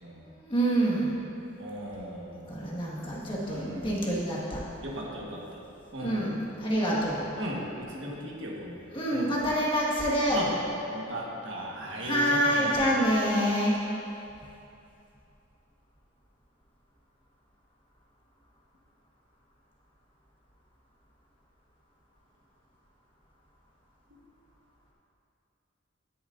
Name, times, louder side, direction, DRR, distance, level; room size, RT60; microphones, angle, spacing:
voice 1, 0.4-1.1 2.5-4.6 6.0-7.2 8.9-10.4 12.0-13.8, equal, 25° left, -6 dB, 1.7 m, -27 dB
voice 2, 1.6-2.6 3.5-4.1 4.8-5.6 5.9-6.3 7.4-9.4 10.3-10.6 10.9-13.0, right 1 dB, 70° right, -3 dB, 1.5 m, -37 dB
17.5 x 7.3 x 2.6 m, 2.8 s
head